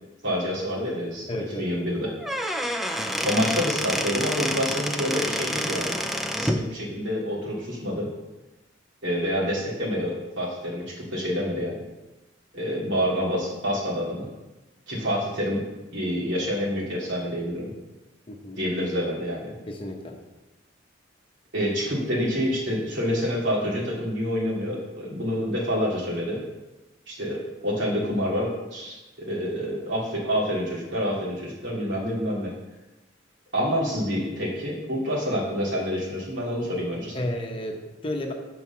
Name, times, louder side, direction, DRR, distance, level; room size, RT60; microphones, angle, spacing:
voice 1, 0.2-2.1 3.2-6.0 6.4-8.1 9.0-11.8 12.5-14.3 14.9-17.7 18.6-19.5 21.5-26.4 27.1-32.5 33.5-37.1, equal, 75° right, -5 dB, 2.7 m, -27 dB
voice 2, 1.3-1.8 18.3-18.6 19.7-20.2 37.1-38.3, left 1 dB, 30° left, 1 dB, 0.9 m, -32 dB
Squeak / Wood, 2.1-6.7, equal, ahead, 0.4 m, -28 dB
7.9 x 4.8 x 5.7 m, 1.1 s
head